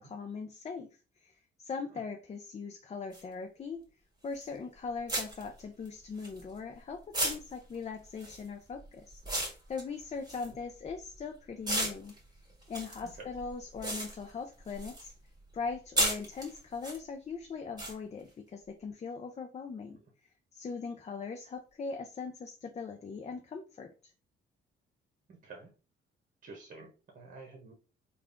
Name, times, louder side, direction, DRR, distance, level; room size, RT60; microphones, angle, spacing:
voice 1, 0.0-3.9 4.2-12.1 12.7-15.1 15.5-24.1, left 5 dB, 35° left, 5 dB, 0.5 m, -40 dB
sound 1, 3.1-3.2 4.4-4.6 5.1-6.7 7.1-11.2 11.6-15.1 15.4-17.0 17.8-17.9, right 1 dB, 20° right, 1.9 m, -35 dB
voice 2, 25.3-25.7 26.4-27.7, right 3 dB, 45° right, 1 dB, 1.1 m, -50 dB
3.5 x 2.4 x 3.5 m, 0.34 s
cardioid pair, 90°, 20 cm